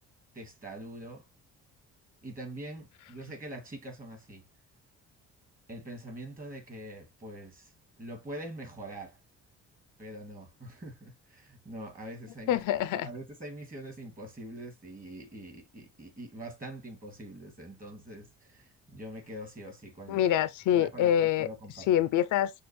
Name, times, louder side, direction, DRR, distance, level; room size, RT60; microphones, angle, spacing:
voice 1, 0.3-1.3 2.2-4.4 5.7-7.7 8.0-9.2 10.0-12.6 13.0-20.2 20.7-21.9, right 1 dB, 25° right, 2.4 m, -44 dB
voice 2, 12.5-13.1 20.1-21.5 21.9-22.5, left 11 dB, 80° left, 0.6 m, -25 dB
6.1 x 2.4 x 3.2 m
cardioid pair, 90°, 30 cm